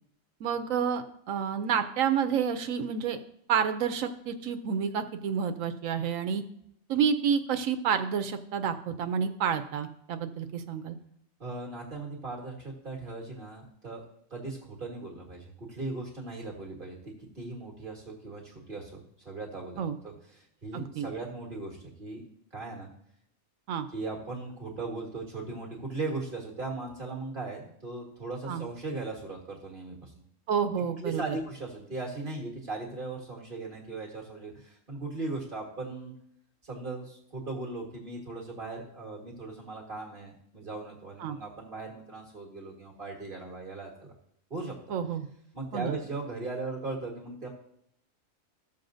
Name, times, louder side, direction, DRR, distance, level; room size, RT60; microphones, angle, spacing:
voice 1, 0.4-3.2 3.5-6.4 6.9-11.0 19.8-20.0 20.7-21.1 23.7-23.9 28.5-28.6 30.5-31.4 41.2-41.4 44.9-45.3 45.7-45.9, right 7 dB, 80° right, 8 dB, 1.0 m, -29 dB
voice 2, 11.4-14.1 14.3-22.3 22.5-22.9 23.9-30.1 31.0-36.1 36.6-44.1 44.5-44.8 45.5-47.5, right 3 dB, 40° right, -2 dB, 1.8 m, -38 dB
14.0 x 7.0 x 2.6 m, 0.71 s
omnidirectional pair, 1.4 m